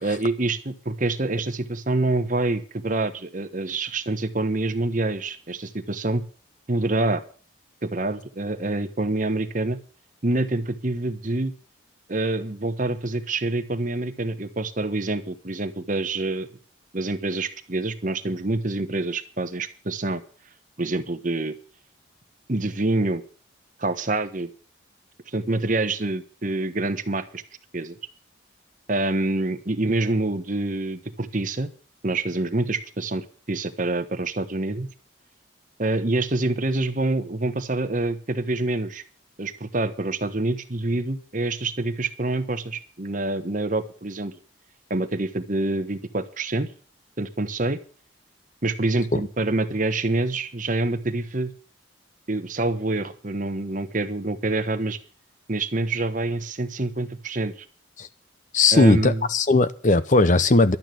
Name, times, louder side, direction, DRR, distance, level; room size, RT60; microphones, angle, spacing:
voice 1, 0.0-6.2 6.7-7.2 7.8-9.8 10.2-11.5 12.1-16.5 16.9-20.2 20.8-21.5 22.5-23.2 23.8-24.5 25.3-27.4 27.7-28.0 28.9-31.7 32.0-34.9 35.8-39.0 39.4-44.3 44.9-46.7 47.2-47.8 48.6-51.5 52.3-55.0 55.5-57.5 58.7-59.3, right 2 dB, 40° right, 1.2 m, -26 dB
voice 2, 58.5-60.8, left 3 dB, 40° left, 0.7 m, -18 dB
12.5 x 9.0 x 7.7 m
head